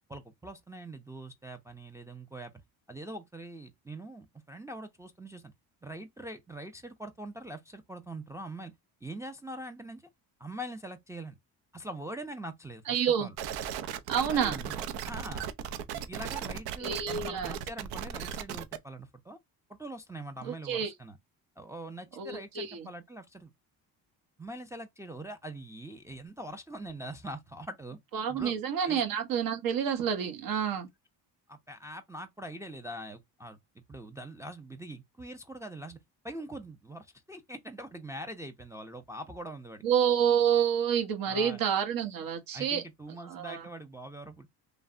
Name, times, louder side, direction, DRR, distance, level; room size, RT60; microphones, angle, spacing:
voice 1, 0.1-2.5 2.9-5.5 5.8-8.7 9.0-10.1 10.4-11.4 11.7-13.3 14.3-15.5 15.9-19.4 19.7-21.2 21.6-23.5 24.4-28.0 28.3-28.5 28.8-29.0 31.5-33.6 33.9-36.0 36.2-39.8 41.3-41.6 42.5-44.5, right 1 dB, 10° right, 0.4 m, -43 dB
voice 2, 12.9-13.3 14.1-14.6 16.8-17.6 20.4-20.9 22.2-22.9 28.1-30.9 39.8-42.8 43.3-43.7, right 8 dB, 65° right, 1.0 m, -28 dB
sound 1, 13.4-18.8, right 8 dB, 85° right, 0.6 m, -37 dB
3.2 x 2.0 x 2.4 m
cardioid pair, 100°, 37 cm